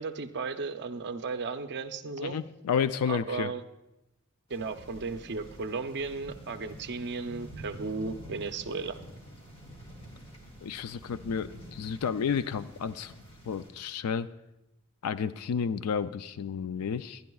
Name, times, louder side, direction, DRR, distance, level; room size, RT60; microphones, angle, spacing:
voice 1, 0.0-2.4 3.1-3.6 4.5-9.0, right 4 dB, 50° right, 8 dB, 0.6 m, -35 dB
voice 2, 2.2-3.5 10.6-13.1 13.5-14.3 15.0-17.2, left 6 dB, 85° left, 13 dB, 0.4 m, -31 dB
sound 1, 4.5-13.7, right 1 dB, 25° left, 2.1 m, -48 dB
21.5 x 11.0 x 2.4 m, 0.92 s
head